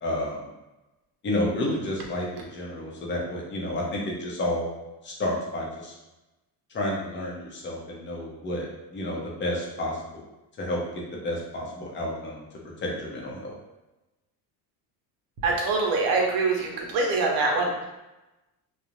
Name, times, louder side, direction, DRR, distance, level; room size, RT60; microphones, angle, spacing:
voice 1, 0.0-0.5 1.2-4.8 5.0-5.9 6.7-10.1 10.6-12.5 12.8-13.5, left 1 dB, 30° left, -3 dB, 0.6 m, -30 dB
voice 2, 15.4-17.9, right 3 dB, 60° right, -1 dB, 0.7 m, -24 dB
2.5 x 2.0 x 2.9 m, 1.0 s
cardioid pair, 140°, 41 cm